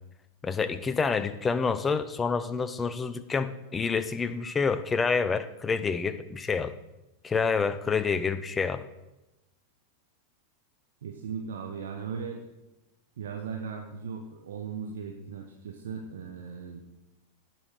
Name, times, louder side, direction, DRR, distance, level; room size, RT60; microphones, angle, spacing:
voice 1, 0.4-6.7 7.2-8.8, left 5 dB, 15° left, 13 dB, 0.7 m, -28 dB
voice 2, 11.0-12.4 13.2-16.8, right 6 dB, 60° right, 2 dB, 1.1 m, -37 dB
17.0 x 6.0 x 4.8 m, 0.97 s
figure-of-eight pair, 90°, 0 cm